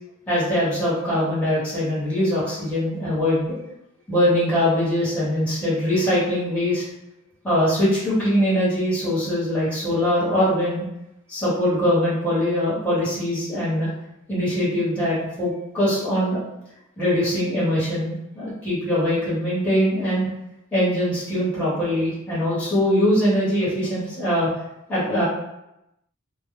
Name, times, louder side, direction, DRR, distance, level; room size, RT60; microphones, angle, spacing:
voice 1, 0.3-3.6 4.1-6.8 7.4-10.8 11.3-13.9 14.3-16.4 17.0-20.3 20.7-24.5 24.9-25.2, equal, 5° left, -10 dB, 1.1 m, -22 dB
2.2 x 2.1 x 3.6 m, 0.87 s
head